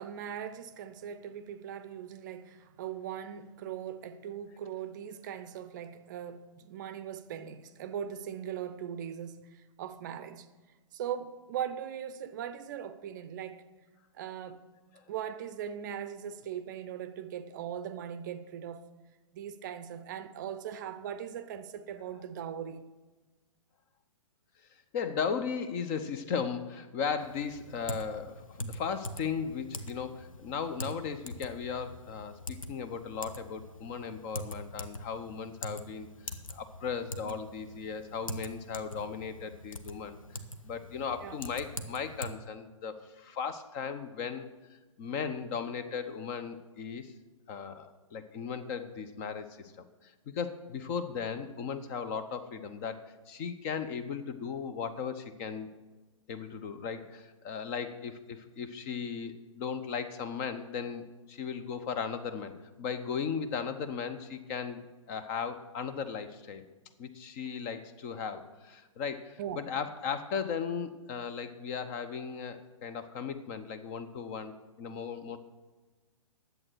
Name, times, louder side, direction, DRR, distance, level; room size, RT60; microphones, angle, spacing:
voice 1, 0.0-10.5 10.9-13.6 14.1-14.6 15.1-18.9 19.3-22.8 37.2-37.3 41.2-41.4 69.4-69.6, right 9 dB, 35° right, 0.6 m, -40 dB
voice 2, 24.9-40.2 40.6-47.1 47.5-55.7 56.3-66.6 67.0-75.4, left 6 dB, 30° left, 0.7 m, -37 dB
Typing, 27.2-42.3, left 1 dB, 75° left, 0.9 m, -43 dB
11.0 x 7.9 x 6.2 m
figure-of-eight pair, 120°, 17 cm